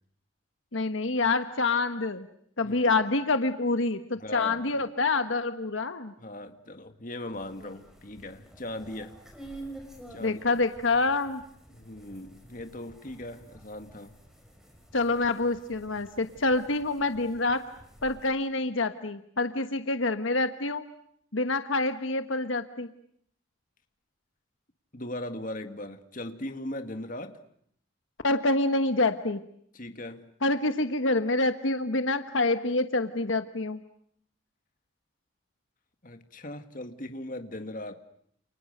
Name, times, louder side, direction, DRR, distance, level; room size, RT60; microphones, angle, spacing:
voice 1, 0.7-2.3 2.6-6.1 10.2-11.4 14.9-17.6 18.0-20.9 21.3-22.9 28.2-29.4 30.4-33.8, left 3 dB, 70° left, 1.3 m, -27 dB
voice 2, 2.6-3.0 4.2-4.9 6.2-9.1 10.1-10.6 11.7-14.1 24.9-27.4 29.7-30.3 36.0-38.0, left 1 dB, 40° left, 2.0 m, -39 dB
sound 1, 7.3-18.3, right 1 dB, ahead, 5.5 m, -50 dB
29.5 x 29.0 x 6.7 m
head